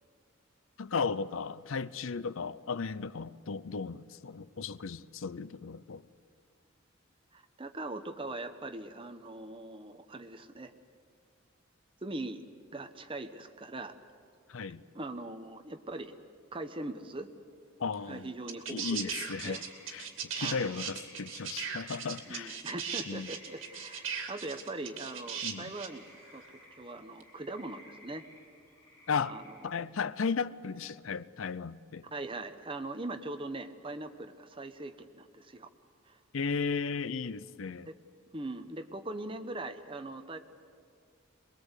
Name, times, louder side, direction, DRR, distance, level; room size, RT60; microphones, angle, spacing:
voice 1, 0.8-6.0 14.5-14.8 17.8-18.3 18.7-19.6 19.9-22.6 23.1-23.3 25.4-25.7 29.1-29.4 29.6-32.1 36.3-37.9, left 5 dB, 75° left, 0.6 m, -35 dB
voice 2, 7.3-10.7 12.0-12.4 12.7-14.0 14.9-16.1 16.5-17.3 18.1-19.1 19.4-19.6 20.4-20.7 22.3-26.1 26.3-26.4 26.7-28.2 29.2-29.5 32.1-35.7 36.1-36.2 37.9-38.0 38.3-40.4, right 2 dB, 25° right, 1.0 m, -41 dB
sound 1, 17.9-18.0 18.5-26.0 27.2-27.3, right 7 dB, 65° right, 2.6 m, -38 dB
sound 2, 19.0-29.7, left 1 dB, 15° left, 7.5 m, -58 dB
23.0 x 22.0 x 8.2 m
head